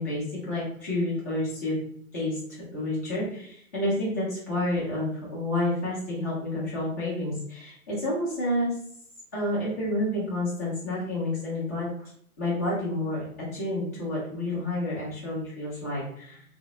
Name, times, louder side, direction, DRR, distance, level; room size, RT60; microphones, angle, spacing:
voice 1, 0.0-1.7 2.1-8.7 9.3-11.9 12.4-13.2 13.5-16.4, left 1 dB, 10° left, -7 dB, 0.5 m, -29 dB
3.6 x 2.0 x 2.8 m, 0.66 s
figure-of-eight pair, 125°, 45 cm